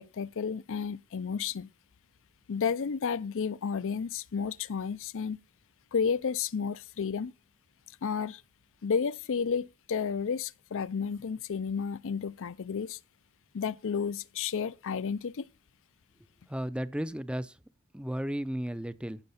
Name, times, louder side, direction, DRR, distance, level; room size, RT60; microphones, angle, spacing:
voice 1, 0.0-1.7 2.5-5.4 5.9-7.3 8.0-8.4 8.8-13.0 13.5-15.5, left 6 dB, 60° left, 0.5 m, -32 dB
voice 2, 16.5-17.5 17.9-19.2, equal, 5° right, 0.5 m, -34 dB
15.0 x 6.5 x 5.7 m
head